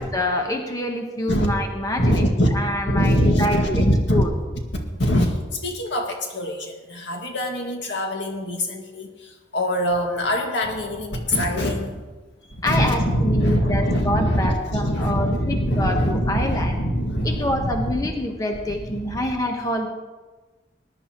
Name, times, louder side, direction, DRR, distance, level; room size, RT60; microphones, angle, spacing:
voice 1, 0.0-2.3 2.5-4.3 12.6-16.8 17.2-19.9, left 1 dB, 20° left, 3 dB, 1.0 m, -26 dB
voice 2, 2.0-2.5 2.9-4.3 4.7-9.1 9.5-12.0 12.5-18.1 18.7-19.3, equal, 80° left, 2 dB, 1.9 m, -23 dB
20.0 x 11.0 x 3.0 m, 1.2 s
head